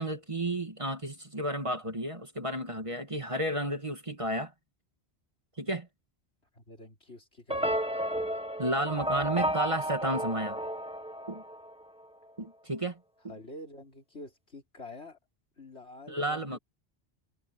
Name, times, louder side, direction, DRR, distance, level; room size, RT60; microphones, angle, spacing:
voice 1, 0.0-4.5 5.6-5.9 8.6-10.6 11.3-11.4 12.4-13.3 16.1-16.6, right 1 dB, 30° right, 1.8 m, -32 dB
voice 2, 6.5-7.8 13.3-15.2 15.6-16.6, left 2 dB, 75° left, 4.6 m, -47 dB
sound 1, 7.5-11.8, equal, 5° right, 1.5 m, -32 dB
omnidirectional pair, 1.1 m